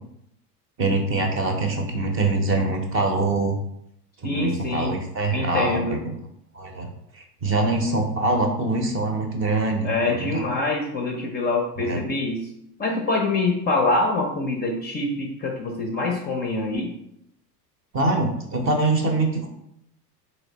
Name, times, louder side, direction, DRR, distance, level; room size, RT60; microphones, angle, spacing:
voice 1, 0.8-3.6 4.2-6.1 6.5-6.9 7.1-10.4 11.8-12.0 17.9-19.5, right 2 dB, 25° right, 3 dB, 0.7 m, -24 dB
voice 2, 4.2-4.9 5.3-6.0 9.8-12.5 12.8-16.9, left 2 dB, 20° left, 1 dB, 0.5 m, -25 dB
3.2 x 2.9 x 4.0 m, 0.76 s
figure-of-eight pair, 80°, 48 cm